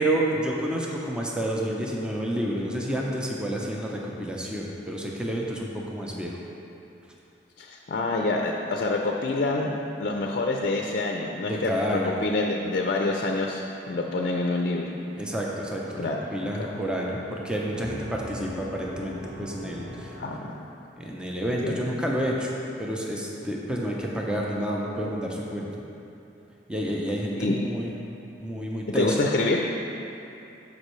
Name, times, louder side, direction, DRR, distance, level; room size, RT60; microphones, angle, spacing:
voice 1, 0.0-6.4 11.4-12.1 15.2-20.2 21.0-22.5 22.8-25.8 26.7-27.9 28.4-29.2, right 1 dB, 5° right, -3 dB, 0.7 m, -29 dB
voice 2, 7.6-9.7 10.0-11.7 12.0-13.6 13.9-14.9 16.0-16.7 20.2-20.6 21.5-21.8 27.4-27.6 28.9-29.6, left 2 dB, 55° left, 1 dB, 0.5 m, -27 dB
sound 1, 15.4-20.9, equal, 65° right, 1.3 m, -43 dB
13.0 x 5.3 x 3.2 m, 2.9 s
head